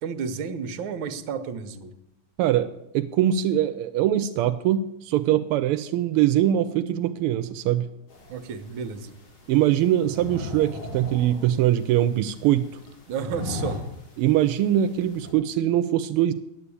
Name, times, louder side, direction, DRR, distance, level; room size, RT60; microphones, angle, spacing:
voice 1, 0.0-1.9 8.3-9.2 13.1-13.8, right 6 dB, 70° right, 10 dB, 1.6 m, -32 dB
voice 2, 2.4-2.7 2.9-7.9 9.5-12.7 14.2-16.3, right 12 dB, 85° right, 10 dB, 1.5 m, -22 dB
sound 1, 8.1-15.3, left 3 dB, 70° left, 3.3 m, -39 dB
9.8 x 8.5 x 8.4 m, 0.85 s
omnidirectional pair, 2.4 m